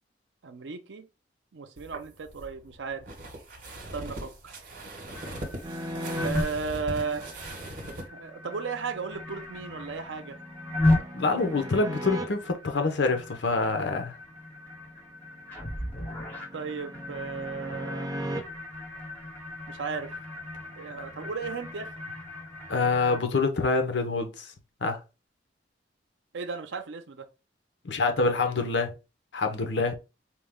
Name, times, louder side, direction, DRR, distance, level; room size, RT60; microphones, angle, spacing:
voice 1, 0.4-1.1 1.5-3.1 3.9-4.3 6.2-7.5 8.1-10.4 16.5-18.3 19.7-20.1 20.8-21.9 26.3-27.3, right 5 dB, 80° right, 0.6 m, -35 dB
Footsteps in snow, 1.8-8.1, right 1 dB, 50° right, 1.2 m, -40 dB
sound 1, 5.1-23.2, left 1 dB, 10° left, 1.1 m, -35 dB
sound 2, 5.6-6.3 9.7-12.2 15.3-18.4, equal, 25° right, 0.6 m, -37 dB
voice 2, 11.1-14.1 22.7-24.5 24.8-25.0 27.8-28.9 29.3-30.0, left 3 dB, 70° left, 0.7 m, -26 dB
4.5 x 2.1 x 3.5 m
head